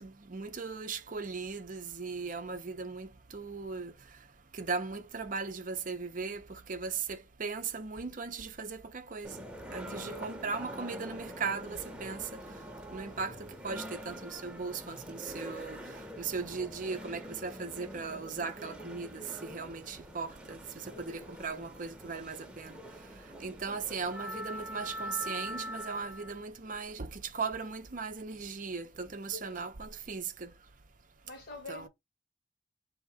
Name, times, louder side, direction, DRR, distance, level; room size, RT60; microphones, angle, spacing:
voice 1, 0.0-3.9 4.5-9.5 9.7-12.4 12.9-15.8 16.2-22.8 23.4-30.5 31.7-31.9, right 4 dB, 45° right, 0.7 m, -38 dB
sound 1, 9.2-26.4, equal, 5° right, 0.9 m, -44 dB
voice 2, 9.8-10.3 20.8-21.3 29.3-29.7 31.2-31.9, left 3 dB, 55° left, 1.4 m, -47 dB
3.7 x 2.9 x 4.8 m
head